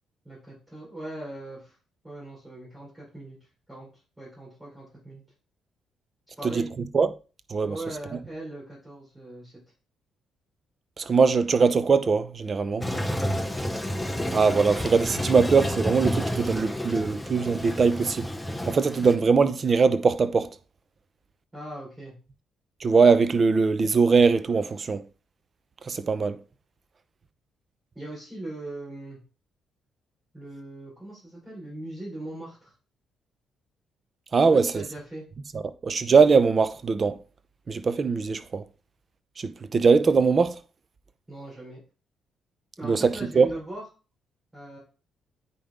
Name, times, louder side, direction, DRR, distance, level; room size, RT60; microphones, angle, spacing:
voice 1, 0.2-1.8 2.0-3.4 3.7-3.9 4.2-5.2 6.4-6.7 7.7-9.5 13.0-13.7 21.5-22.1 27.9-29.2 30.3-32.7 34.5-35.2 41.3-41.8 42.8-43.8 44.5-44.8, right 1 dB, 15° right, 4.6 m, -39 dB
voice 2, 11.0-12.9 14.3-18.3 18.6-20.5 22.8-25.0 25.8-26.4 34.3-34.8 35.5-37.2 37.7-38.6 39.4-40.6 42.8-43.5, right 5 dB, 40° right, 0.7 m, -21 dB
Toilet flush, 12.8-19.2, equal, 5° left, 0.8 m, -30 dB
8.5 x 5.4 x 3.7 m
cardioid pair, 90°, 0 cm